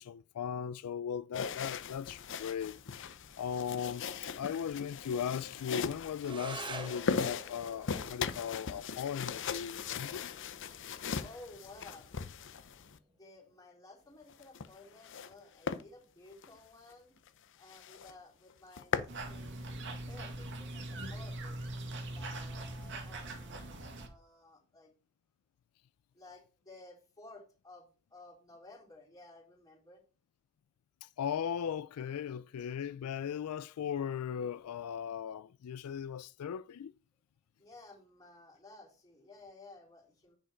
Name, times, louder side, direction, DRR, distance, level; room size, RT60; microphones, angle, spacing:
voice 1, 0.0-3.1 3.4-4.0 4.4-10.3 31.0-36.9, left 8 dB, 90° left, 0.4 m, -38 dB
sound 1, 1.3-13.0 14.3-15.3 15.6-15.8 16.3-16.5 16.9-17.0 17.3-17.4 17.7-18.1 18.5-19.2, left 6 dB, 60° left, 0.7 m, -39 dB
sound 2, 6.2-15.2, right 3 dB, 20° right, 1.0 m, -50 dB
voice 2, 11.2-12.1 13.1-17.2 17.6-19.0 19.3-21.6 22.1-24.9 26.1-30.0 37.6-40.4, left 2 dB, 15° left, 3.8 m, -55 dB
sound 3, 19.1-24.1, right 1 dB, 60° right, 2.2 m, -42 dB
10.0 x 5.3 x 4.4 m
head